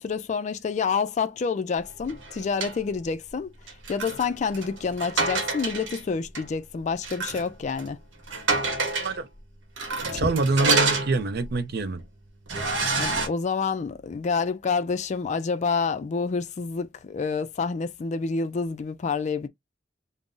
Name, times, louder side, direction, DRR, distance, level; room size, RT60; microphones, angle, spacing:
voice 1, 0.0-3.5 3.9-8.0 10.1-10.3 13.0-19.5, left 5 dB, 40° left, 0.3 m, -28 dB
sound 1, 2.0-2.8 3.7-6.0 6.3-6.4 7.0-7.5 7.8-7.9 8.3-9.2 9.8-11.6 12.0-12.1 12.5-13.3, right 3 dB, 80° right, 0.9 m, -27 dB
voice 2, 9.0-9.3 10.2-12.0, right 3 dB, 55° right, 0.4 m, -25 dB
2.5 x 2.0 x 3.6 m
head